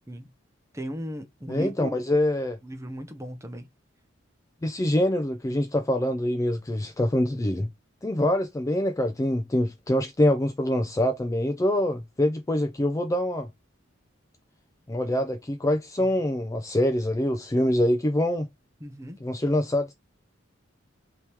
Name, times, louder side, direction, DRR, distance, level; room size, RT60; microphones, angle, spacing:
voice 1, 0.7-1.9 2.6-3.6 18.8-19.2, equal, 15° right, 0.7 m, -36 dB
voice 2, 1.5-2.6 4.6-7.7 8.0-13.5 14.9-18.5 19.2-19.9, left 1 dB, 15° left, 0.3 m, -25 dB
3.5 x 2.9 x 4.4 m
head